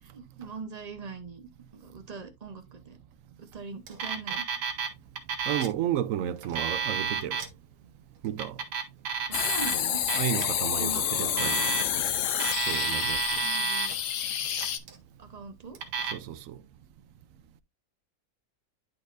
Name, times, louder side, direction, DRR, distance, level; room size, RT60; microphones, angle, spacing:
voice 1, 0.0-3.0 3.4-4.4 9.3-10.0 10.8-11.7 13.4-13.9 15.2-15.8, right 4 dB, 35° right, 0.7 m, -42 dB
Alarm, 3.9-4.9 5.2-5.8 6.4-7.5 8.3-9.7 10.1-10.4 11.2-12.1 12.4-14.0 14.5-15.0 15.7-16.1, right 6 dB, 85° right, 1.8 m, -31 dB
voice 2, 5.5-7.4 8.2-8.6 10.2-11.6 12.7-13.2 16.1-16.6, right 11 dB, 70° right, 0.9 m, -32 dB
sound 1, 9.3-14.8, left 9 dB, 60° left, 0.9 m, -29 dB
11.0 x 4.2 x 2.5 m
omnidirectional pair, 1.8 m